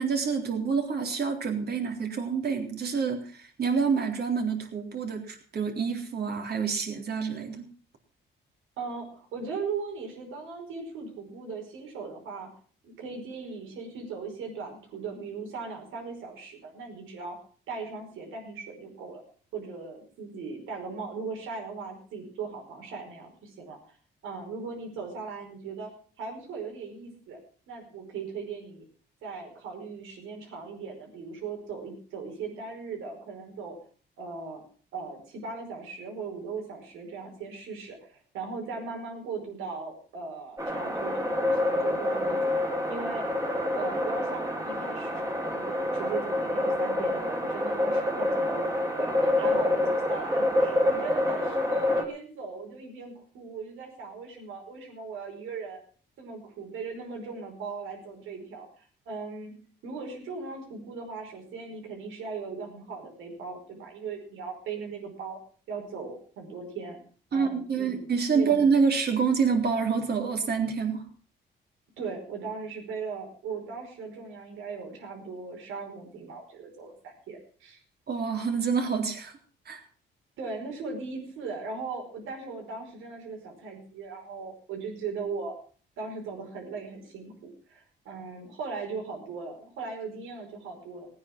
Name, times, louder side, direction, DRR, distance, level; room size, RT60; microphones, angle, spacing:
voice 1, 0.0-7.7 67.3-71.0 78.1-79.4 79.7-79.8, right 5 dB, 55° right, 3 dB, 3.7 m, -27 dB
voice 2, 8.8-12.5 12.8-17.4 17.7-19.2 19.5-24.0 24.2-25.9 26.2-27.4 27.7-28.8 29.2-33.8 34.2-34.6 34.9-42.5 42.9-43.2 43.7-55.8 56.2-59.5 59.8-65.4 65.7-67.0 67.3-68.6 72.0-77.8 80.4-85.5 86.0-91.1, right 4 dB, 90° right, 2 dB, 5.1 m, -38 dB
sound 1, 40.6-52.0, left 1 dB, 15° right, 2.6 m, -27 dB
17.5 x 9.6 x 6.1 m, 0.43 s
cardioid pair, 90°, 20 cm